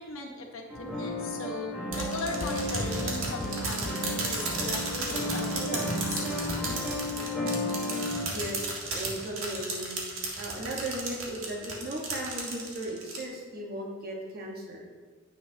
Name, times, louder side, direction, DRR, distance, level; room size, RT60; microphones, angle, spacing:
voice 1, 0.0-6.3, left 2 dB, 85° left, 1 dB, 1.3 m, -38 dB
sound 1, 0.7-8.2, left 1 dB, ahead, 2.0 m, -33 dB
sound 2, 1.9-7.9, left 2 dB, 55° left, 0.6 m, -43 dB
sound 3, 1.9-13.2, right 3 dB, 90° right, 1.9 m, -34 dB
voice 2, 8.3-10.0 10.4-14.8, right 1 dB, 45° right, -2 dB, 1.4 m, -36 dB
9.8 x 8.6 x 2.8 m, 1.5 s
head